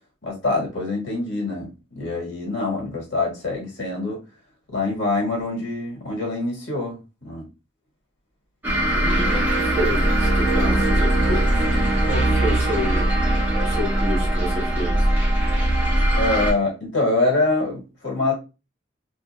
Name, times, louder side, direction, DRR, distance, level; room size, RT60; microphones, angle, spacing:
voice 1, 0.2-4.2 4.7-7.5 16.2-18.3, left 2 dB, 85° left, -2 dB, 1.6 m, -25 dB
sound 1, 8.6-16.5, right 1 dB, 10° right, 0.8 m, -20 dB
voice 2, 8.9-11.6 12.0-13.2 13.6-15.0, equal, 35° right, -2 dB, 1.1 m, -30 dB
2.7 x 2.7 x 2.3 m, 0.29 s
head